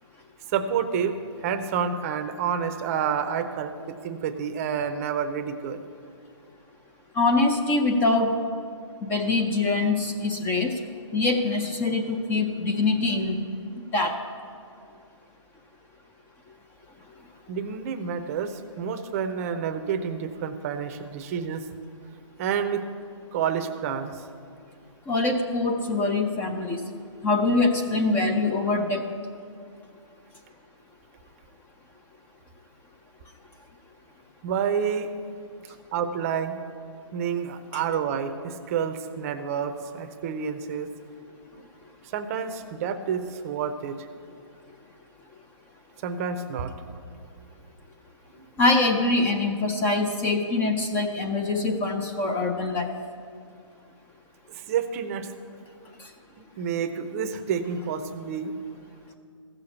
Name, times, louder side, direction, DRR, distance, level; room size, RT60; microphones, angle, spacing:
voice 1, 0.5-1.1 1.4-5.8 17.5-21.7 22.4-22.8 23.3-24.2 34.4-35.1 35.9-36.6 37.1-40.9 42.1-44.0 46.0-46.7 48.3-48.5 54.5-55.3 56.6-58.5, right 7 dB, 30° right, 9 dB, 0.6 m, -29 dB
voice 2, 7.2-8.4 9.0-10.7 11.1-13.4 13.9-14.1 25.1-26.8 27.2-29.1 48.6-52.9, left 3 dB, 10° left, 4 dB, 0.5 m, -24 dB
15.0 x 6.7 x 7.1 m, 2.3 s
hypercardioid pair, 155°, 17 cm